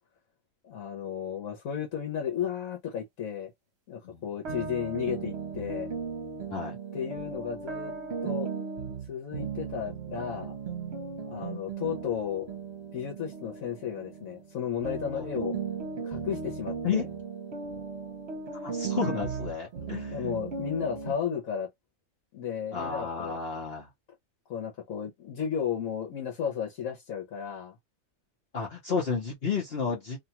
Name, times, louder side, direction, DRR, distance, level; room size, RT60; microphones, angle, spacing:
voice 1, 0.6-3.5 3.9-5.9 6.9-7.9 8.2-8.5 9.1-10.6 11.3-12.5 12.9-15.6 16.0-17.0 20.1-21.7 22.3-23.4 24.5-27.8, left 8 dB, 80° left, 1.2 m, -33 dB
sound 1, 4.5-14.6 14.8-21.1, right 5 dB, 55° right, 1.0 m, -36 dB
voice 2, 18.5-20.3 22.7-23.9 28.5-30.2, left 5 dB, 50° left, 1.0 m, -32 dB
2.8 x 2.3 x 2.8 m
omnidirectional pair, 1.4 m